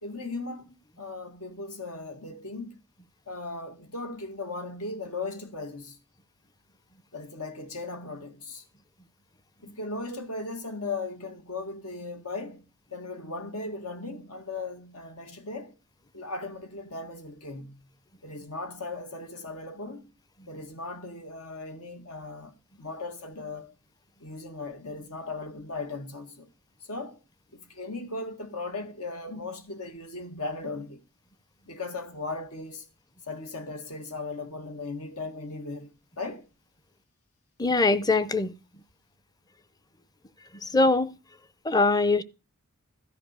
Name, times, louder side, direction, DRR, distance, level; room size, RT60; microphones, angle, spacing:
voice 1, 0.0-2.8 3.3-6.0 7.1-8.6 9.6-12.6 12.9-15.7 16.1-17.8 18.2-20.1 20.5-23.7 24.2-26.5 26.9-27.2 27.5-31.0 31.7-32.8 33.3-36.5, left 3 dB, 80° left, 1.9 m, -37 dB
voice 2, 37.6-38.5 40.6-41.1 41.6-42.2, left 3 dB, 15° left, 0.6 m, -22 dB
13.5 x 5.4 x 8.1 m
head